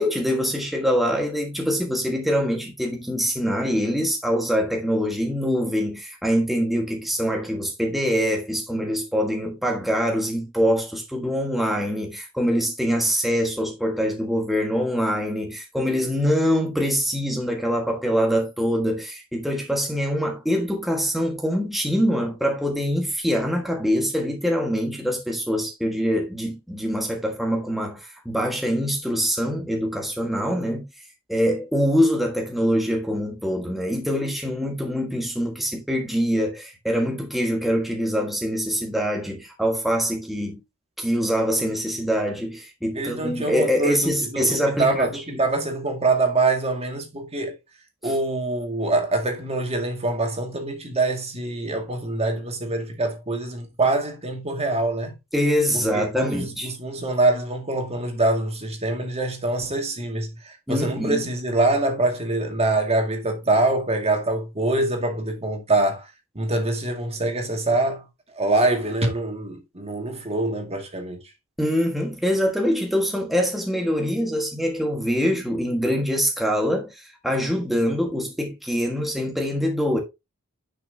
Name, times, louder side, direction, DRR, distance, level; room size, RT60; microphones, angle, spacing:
voice 1, 0.0-30.8 31.3-40.6 41.0-45.4 48.0-48.2 55.3-56.7 60.7-61.2 71.6-80.0, equal, ahead, 1.5 m, -24 dB
voice 2, 43.0-44.0 44.3-47.5 48.0-55.2 55.7-66.0 66.4-68.0 68.4-71.2, right 2 dB, 30° right, 2.1 m, -24 dB
10.0 x 6.0 x 2.8 m
head